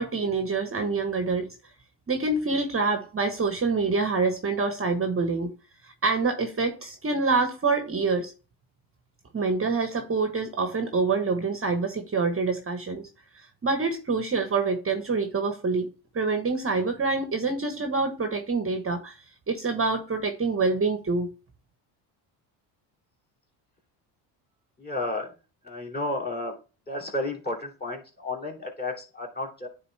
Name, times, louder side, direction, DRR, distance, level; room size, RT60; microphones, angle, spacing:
voice 1, 0.0-1.6 2.1-5.5 5.8-8.3 9.3-13.1 13.3-19.2 19.5-21.3, right 4 dB, 25° right, 1.1 m, -26 dB
voice 2, 24.8-25.3 25.6-26.6 26.9-29.7, left 2 dB, 20° left, 2.7 m, -32 dB
9.5 x 3.8 x 3.2 m
supercardioid pair, 75°, 49 cm